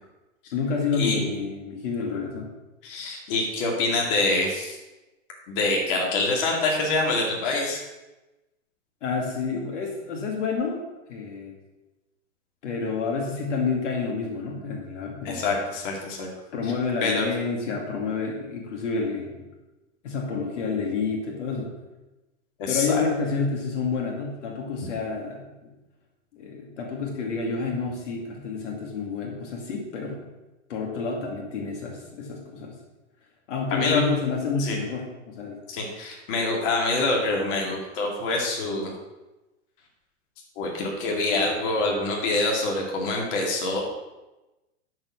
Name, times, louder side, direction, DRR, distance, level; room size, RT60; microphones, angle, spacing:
voice 1, 0.5-2.5 9.0-10.8 11.1-11.6 12.6-15.4 16.5-19.5 20.0-21.7 22.7-25.7 26.3-30.2 30.7-32.8 33.5-35.6, left 4 dB, 70° left, 1 dB, 2.4 m, -29 dB
voice 2, 2.8-4.8 5.5-7.8 15.2-16.3 17.0-17.3 22.6-23.1 33.7-34.0 34.6-34.8 35.7-38.9 40.6-43.8, left 2 dB, 45° left, -1 dB, 2.4 m, -25 dB
12.0 x 4.5 x 6.2 m, 1.0 s
hypercardioid pair, 145°, 38 cm